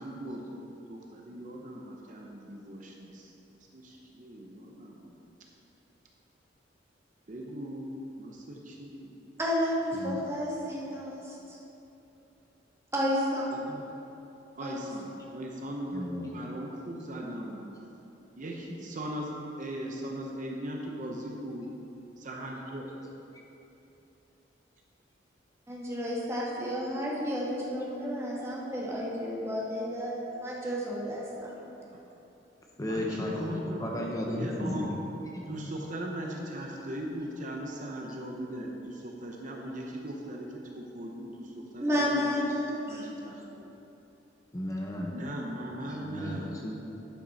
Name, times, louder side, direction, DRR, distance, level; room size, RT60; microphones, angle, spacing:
voice 1, 0.0-3.3 3.7-5.1 7.3-7.9 8.2-9.1 13.7-13.9 14.6-17.7 18.3-19.3 19.6-21.6 22.2-23.0 31.9-32.0 32.8-34.9 35.5-40.5 40.7-42.5 42.9-43.7 45.1-46.5, right 1 dB, 45° right, 0 dB, 0.8 m, -39 dB
voice 2, 9.4-11.6 12.9-13.6 14.6-14.9 25.7-31.6 41.8-43.1, equal, 15° right, -5 dB, 1.6 m, -31 dB
voice 3, 15.9-16.3 32.8-33.5 33.8-35.0 35.3-35.7 44.5-45.1 46.0-46.9, left 1 dB, 20° left, -1 dB, 0.7 m, -34 dB
11.0 x 6.0 x 4.1 m, 3.0 s
head